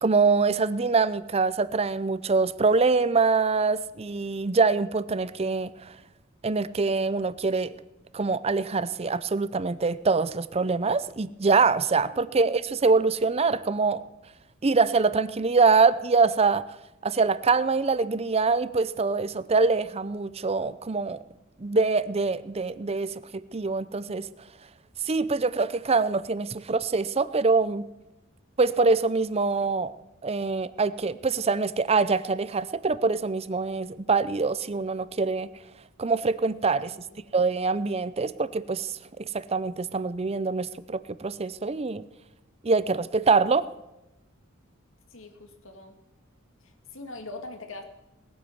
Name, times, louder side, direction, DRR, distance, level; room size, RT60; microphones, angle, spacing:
voice 1, 0.0-5.9 6.4-7.8 8.1-14.0 14.6-16.6 17.0-21.2 21.6-24.3 25.1-27.9 28.6-29.9 30.2-35.5 36.0-36.9 37.3-42.0 42.6-43.7, right 4 dB, 30° right, 16 dB, 0.6 m, -24 dB
voice 2, 12.1-12.6 36.9-37.2 45.1-46.0 46.6-47.8, left 2 dB, 70° left, 6 dB, 2.1 m, -43 dB
19.5 x 9.4 x 7.2 m, 0.96 s
head